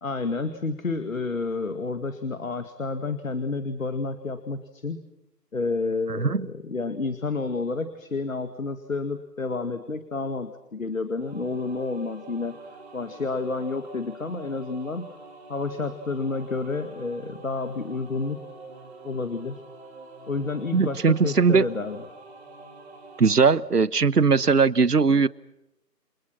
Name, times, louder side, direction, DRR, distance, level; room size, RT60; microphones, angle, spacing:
voice 1, 0.0-5.0 5.5-12.6 12.9-15.2 15.5-18.4 19.0-19.6 20.3-22.0, left 3 dB, 50° left, 10 dB, 2.2 m, -30 dB
voice 2, 6.1-6.5 20.7-21.6 23.2-25.3, right 5 dB, 70° right, 20 dB, 1.2 m, -20 dB
sound 1, 11.2-23.3, right 3 dB, 40° right, 3.9 m, -46 dB
29.5 x 28.0 x 6.0 m, 0.89 s
figure-of-eight pair, 160°, 49 cm